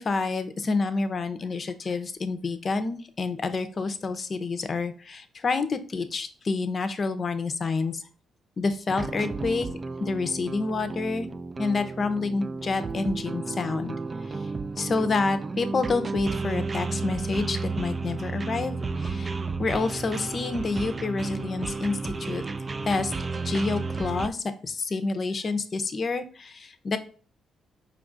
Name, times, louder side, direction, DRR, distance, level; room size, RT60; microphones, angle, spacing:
voice 1, 0.0-8.0 8.6-9.7 10.0-11.3 11.6-13.9 14.3-14.4 14.8-19.3 19.6-22.5 22.9-23.1 23.4-24.4 24.6-27.0, left 3 dB, 40° left, 10 dB, 0.6 m, -28 dB
sound 1, 8.9-24.3, right 3 dB, 30° right, 0.3 m, -32 dB
4.7 x 2.4 x 3.8 m, 0.40 s
cardioid pair, 90°, 0 cm